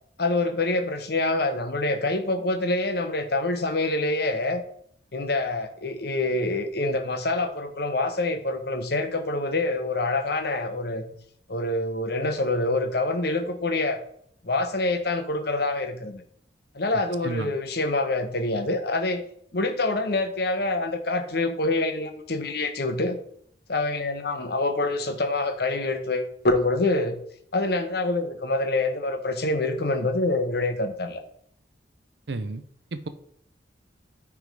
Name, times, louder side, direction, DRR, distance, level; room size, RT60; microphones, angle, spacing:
voice 1, 0.2-4.6 5.1-11.1 11.5-14.0 14.4-16.2 16.7-19.2 19.5-23.2 23.7-27.1 27.5-31.2, left 2 dB, 60° left, 7 dB, 1.0 m, -26 dB
voice 2, 32.3-32.6 32.9-33.1, right 2 dB, 65° right, 11 dB, 0.7 m, -31 dB
9.0 x 3.6 x 4.7 m, 0.65 s
head